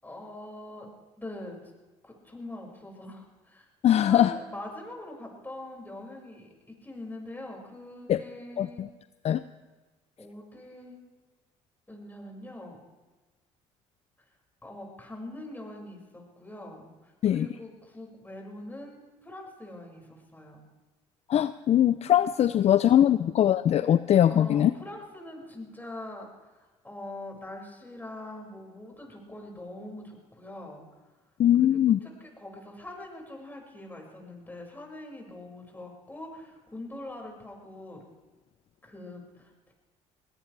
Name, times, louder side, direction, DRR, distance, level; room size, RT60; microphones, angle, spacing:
voice 1, 0.0-0.9 1.2-1.6 2.0-3.7 4.1-8.9 10.2-11.0 11.9-12.8 14.6-20.6 24.3-31.1 32.0-38.0 38.8-39.7, left 1 dB, 15° left, 0 dB, 5.7 m, -43 dB
voice 2, 3.8-4.3 8.1-8.2 8.6-8.9 9.2-9.4 17.2-17.5 21.3-24.7 31.4-32.0, left 11 dB, 45° left, 13 dB, 0.5 m, -21 dB
21.5 x 18.0 x 3.3 m, 1.2 s
supercardioid pair, 65°, 15 cm